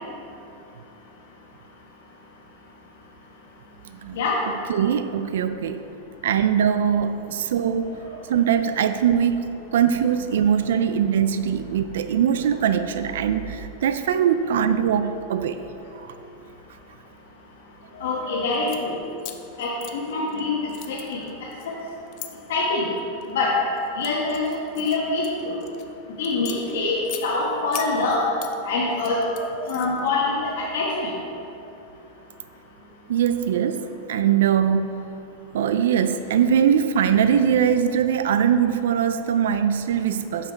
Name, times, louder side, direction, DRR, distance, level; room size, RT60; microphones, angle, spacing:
voice 1, 4.7-5.8 6.2-7.9 8.3-9.5 9.7-15.6 15.9-16.2 33.1-34.9 35.5-40.5, right 8 dB, 80° right, 10 dB, 0.3 m, -21 dB
voice 2, 17.9-19.0 19.6-21.2 22.5-22.8 23.3-23.5 24.0-24.4 24.7-25.6 26.2-28.2 28.6-31.1, left 3 dB, 75° left, -5 dB, 1.1 m, -25 dB
sound 1, 18.5-18.8 19.2-20.4 20.7-22.3 23.0-23.3 23.8-25.8 26.2-27.3 27.7-28.5 28.9-30.1, left 13 dB, 35° left, 0.4 m, -39 dB
6.7 x 5.9 x 4.5 m, 2.8 s
supercardioid pair, 180°, 0 cm